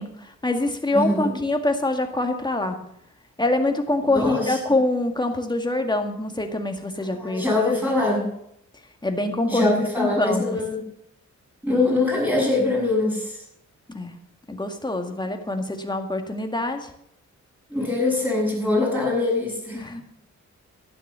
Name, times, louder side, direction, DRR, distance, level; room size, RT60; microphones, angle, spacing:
voice 1, 0.0-2.8 3.4-7.7 9.0-9.7 10.0-10.6 13.9-14.1 14.5-16.9 19.7-20.0, left 2 dB, 15° left, 5 dB, 1.9 m, -25 dB
voice 2, 0.9-1.4 4.1-4.6 7.1-8.4 9.5-10.8 11.6-13.4 17.7-19.9, left 2 dB, 5° right, -2 dB, 7.2 m, -23 dB
12.0 x 10.5 x 6.8 m, 0.72 s
wide cardioid pair, 100°, 30 cm